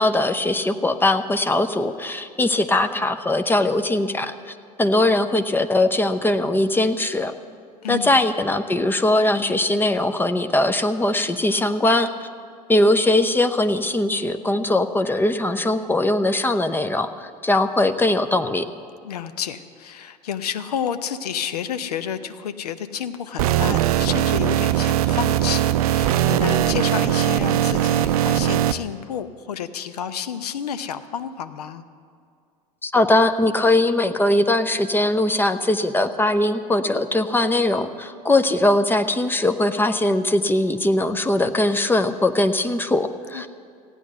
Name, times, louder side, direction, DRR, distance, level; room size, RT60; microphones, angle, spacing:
voice 1, 0.0-7.3 7.9-12.3 12.7-18.6 32.8-43.5, left 1 dB, 10° left, 8 dB, 0.6 m, -20 dB
voice 2, 7.8-8.2 19.0-31.8 43.3-43.5, left 8 dB, 70° left, 11 dB, 0.7 m, -30 dB
sound 1, 23.4-28.7, right 12 dB, 65° right, 0.5 m, -20 dB
15.5 x 9.0 x 6.7 m, 2.3 s
figure-of-eight pair, 75°, 21 cm